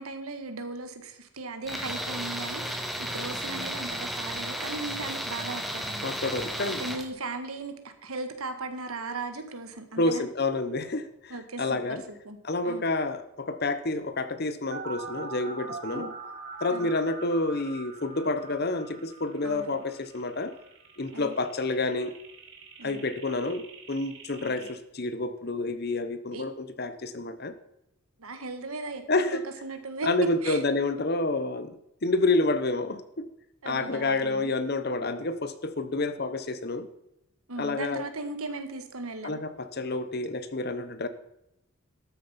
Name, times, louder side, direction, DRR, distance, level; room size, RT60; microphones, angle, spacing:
voice 1, 0.0-2.6 3.0-6.5 6.8-10.2 11.3-12.8 15.9-16.1 16.7-16.9 19.4-19.8 21.1-21.4 22.8-23.1 24.3-24.7 26.3-26.5 28.2-29.0 29.3-30.1 30.4-30.6 33.6-34.5 37.5-39.4, right 3 dB, 85° right, 8 dB, 1.6 m, -37 dB
Tools, 1.7-7.1, equal, ahead, 1.1 m, -34 dB
voice 2, 6.0-6.8 10.0-12.0 12.4-16.1 16.6-20.5 21.0-22.1 22.8-27.5 29.1-29.4 30.0-33.3 33.6-36.9 37.6-38.0 39.2-41.1, left 2 dB, 45° left, 11 dB, 0.9 m, -29 dB
sound 1, 14.7-24.7, right 4 dB, 55° right, 2.3 m, -43 dB
13.0 x 7.1 x 5.7 m, 0.85 s
head